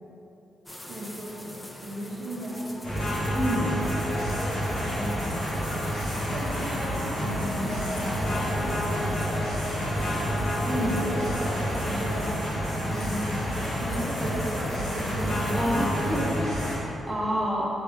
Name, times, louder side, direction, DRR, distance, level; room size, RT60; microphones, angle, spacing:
sound 1, 0.7-16.2, left 1 dB, 10° left, 0.3 m, -44 dB
voice 1, 0.8-2.6 4.9-5.4 6.3-9.2 10.6-11.5 11.9-12.4 12.9-16.0 17.0-17.2, right 1 dB, 70° right, -4 dB, 0.6 m, -35 dB
sound 2, 2.8-16.8, equal, 80° left, 1.4 m, -29 dB
voice 2, 3.3-3.8 10.6-11.0 15.5-16.3 17.1-17.7, equal, 10° right, -7 dB, 0.8 m, -28 dB
sound 3, 7.0-12.8, equal, 65° left, 0.6 m, -46 dB
3.6 x 3.0 x 3.2 m, 3.0 s
cardioid pair, 95°, 0 cm